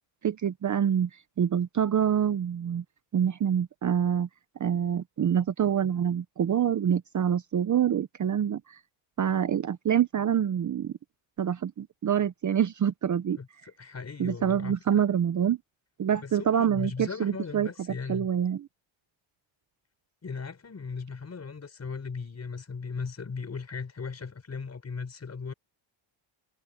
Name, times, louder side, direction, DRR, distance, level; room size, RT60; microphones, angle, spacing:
voice 1, 0.2-2.8 3.1-4.3 4.6-8.8 9.2-10.9 11.4-13.4 14.2-15.6 16.0-17.7 18.1-18.7, right 9 dB, 35° right, 0.8 m, -26 dB
voice 2, 13.3-15.0 16.2-18.3 20.2-25.5, left 5 dB, 30° left, 5.0 m, -37 dB
cardioid pair, 110°, 49 cm